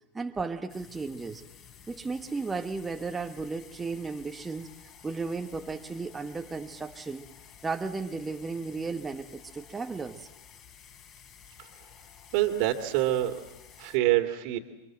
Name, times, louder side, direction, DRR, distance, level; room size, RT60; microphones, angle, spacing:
voice 1, 0.1-1.4 1.9-4.7 5.0-7.3 7.6-10.3, right 4 dB, 10° right, 5 dB, 1.2 m, -34 dB
sound 1, 0.7-14.0, left 8 dB, 35° left, 3.5 m, -53 dB
voice 2, 12.3-13.4 13.8-14.6, right 15 dB, 45° right, 4 dB, 2.4 m, -26 dB
29.5 x 24.5 x 7.7 m, 0.99 s
figure-of-eight pair, 90°, 0 cm